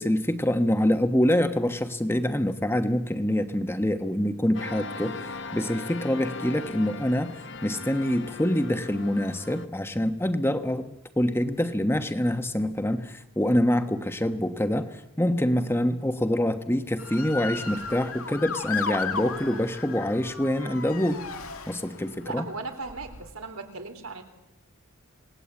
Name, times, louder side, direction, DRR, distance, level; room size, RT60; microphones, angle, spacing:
voice 1, 0.0-21.2 21.7-22.5, left 1 dB, 10° left, 8 dB, 1.3 m, -26 dB
sound 1, 4.5-9.7, left 4 dB, 55° left, 1.1 m, -39 dB
Motor vehicle (road) / Siren, 17.0-22.2 22.9-23.3, left 5 dB, 85° left, 2.4 m, -35 dB
voice 2, 22.2-24.2, right 3 dB, 85° right, 7 dB, 3.7 m, -37 dB
27.5 x 19.5 x 8.5 m, 0.93 s
head